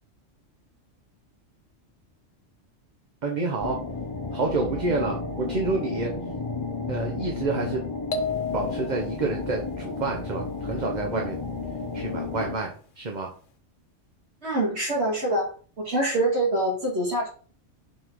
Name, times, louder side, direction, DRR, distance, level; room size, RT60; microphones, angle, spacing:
voice 1, 3.2-3.8 4.3-6.1 6.9-7.8 8.5-11.4 11.9-13.3, right 3 dB, 40° right, 1 dB, 1.0 m, -28 dB
sound 1, 3.6-12.6, left 3 dB, 25° left, 0.8 m, -32 dB
sound 2, 8.1-9.3, left 4 dB, 80° left, 1.2 m, -31 dB
voice 2, 14.4-15.5 15.8-17.3, right 1 dB, 60° right, -2 dB, 2.1 m, -25 dB
5.8 x 4.2 x 4.6 m, 0.42 s
omnidirectional pair, 1.3 m